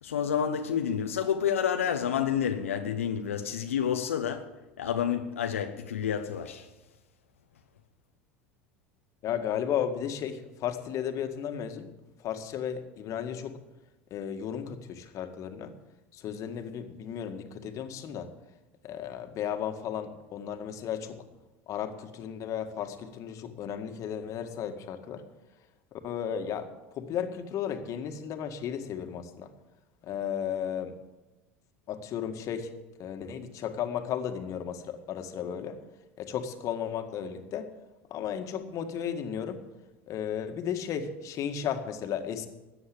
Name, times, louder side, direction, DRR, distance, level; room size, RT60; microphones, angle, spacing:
voice 1, 0.0-6.7, left 8 dB, 85° left, 0.9 m, -29 dB
voice 2, 9.2-11.9 12.2-13.6 14.1-15.7 16.1-18.3 18.8-21.2 21.7-25.2 26.0-26.7 27.0-29.5 30.0-31.0 31.9-32.7 33.0-35.8 36.2-37.7 38.1-39.6 40.1-42.5, left 8 dB, 50° left, 1.9 m, -34 dB
14.0 x 9.4 x 8.6 m
hypercardioid pair, 80°, 7 cm